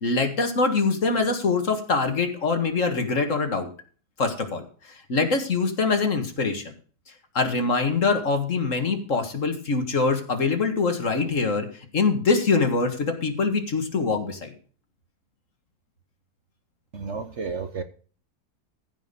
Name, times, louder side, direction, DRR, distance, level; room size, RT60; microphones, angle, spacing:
voice 1, 0.0-3.7 4.2-4.6 5.1-6.6 7.4-11.7 11.9-14.5, left 4 dB, 50° left, 5 dB, 2.0 m, -24 dB
voice 2, 16.9-17.8, right 5 dB, 50° right, 9 dB, 1.1 m, -32 dB
15.0 x 5.3 x 6.9 m, 0.40 s
omnidirectional pair, 1.7 m